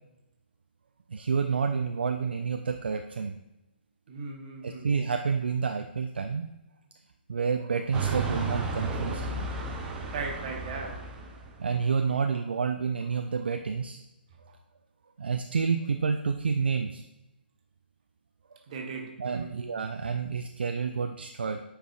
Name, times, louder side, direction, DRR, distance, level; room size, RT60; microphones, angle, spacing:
voice 1, 1.1-3.4 4.6-6.5 7.3-10.0 11.6-14.0 15.2-17.0 19.2-21.6, right 5 dB, 65° right, 6 dB, 0.4 m, -29 dB
voice 2, 4.1-4.9 10.1-11.0 18.7-19.6, right 4 dB, 40° right, 3 dB, 1.1 m, -37 dB
sound 1, 7.9-11.6, right 3 dB, 10° right, 0.7 m, -33 dB
8.8 x 4.7 x 2.4 m, 0.94 s
figure-of-eight pair, 130°, 6 cm